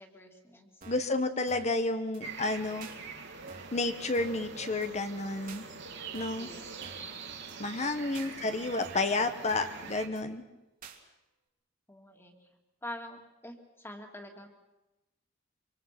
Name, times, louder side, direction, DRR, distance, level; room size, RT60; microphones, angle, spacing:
voice 1, 0.0-0.7 6.3-6.7 7.8-8.2 11.9-12.3 12.8-14.5, left 1 dB, 10° left, 4 dB, 2.6 m, -46 dB
sound 1, 0.8-1.1 1.5-1.8 2.1-2.2 2.8-3.0 3.5-3.8 4.1-4.5 4.8-4.9 5.5-5.6 6.1-6.5 6.8-7.1 7.5-7.6 8.1-8.3 8.8-9.1 9.5-9.8 10.1-10.2 10.8-11.0, right 4 dB, 45° right, 2.5 m, -50 dB
voice 2, 0.9-2.9 3.7-5.7 6.1-6.5 7.6-10.4, left 2 dB, 35° left, 9 dB, 1.2 m, -31 dB
sound 2, 2.2-10.1, right 5 dB, 60° right, 2.7 m, -44 dB
25.5 x 25.0 x 6.0 m, 0.99 s
head